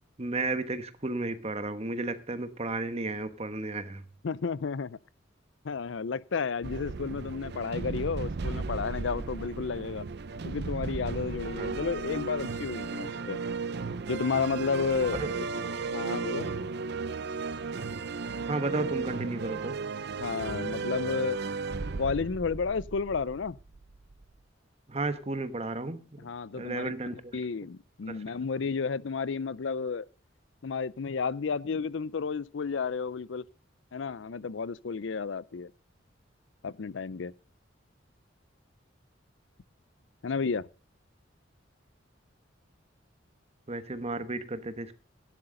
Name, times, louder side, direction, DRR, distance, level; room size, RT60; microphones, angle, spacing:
voice 1, 0.2-4.1 11.6-11.8 15.1-15.3 18.5-19.8 24.9-26.3 26.5-27.4 28.1-28.4 43.7-44.9, right 2 dB, 35° right, 1.2 m, -33 dB
voice 2, 4.2-5.0 5.6-10.0 10.4-13.4 14.1-15.4 15.8-16.5 20.2-21.4 22.0-23.6 26.2-26.9 27.3-30.1 30.6-33.4 33.9-35.7 36.6-37.3 40.2-40.7, left 5 dB, 70° left, 0.5 m, -32 dB
sound 1, 6.6-24.2, right 4 dB, 60° right, 0.6 m, -35 dB
16.0 x 11.0 x 3.9 m
head